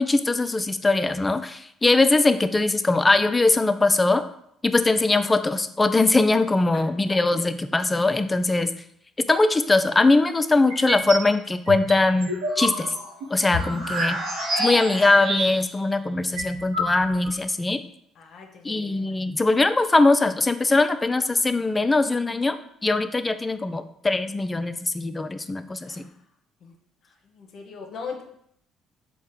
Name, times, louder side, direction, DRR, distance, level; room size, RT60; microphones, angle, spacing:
voice 1, 0.0-4.2 4.6-8.7 9.2-12.9 13.3-14.2 14.6-17.8 18.6-26.0, left 2 dB, 20° left, 11 dB, 0.3 m, -21 dB
sound 1, 10.7-11.3 11.7-15.8 16.1-16.2 16.4-17.3, right 1 dB, 75° right, 0.7 m, -28 dB
voice 2, 13.5-14.1 18.1-19.1 25.8-26.2 26.6-26.8 27.0-28.2, left 5 dB, 60° left, 3 dB, 0.6 m, -40 dB
4.1 x 2.2 x 3.6 m, 0.71 s
hypercardioid pair, 60°, 0 cm